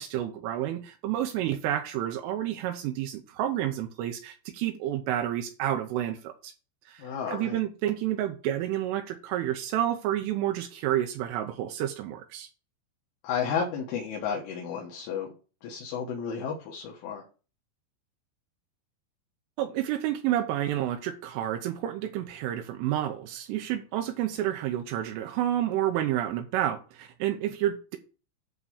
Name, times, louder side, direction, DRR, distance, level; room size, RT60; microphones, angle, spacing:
voice 1, 0.0-6.5 6.9-12.5 19.6-28.0, right 12 dB, 80° right, 3.3 m, -30 dB
voice 2, 7.0-7.6 13.2-15.3 15.6-17.2, left 6 dB, 75° left, 3.7 m, -32 dB
11.0 x 3.7 x 6.9 m
omnidirectional pair, 5.8 m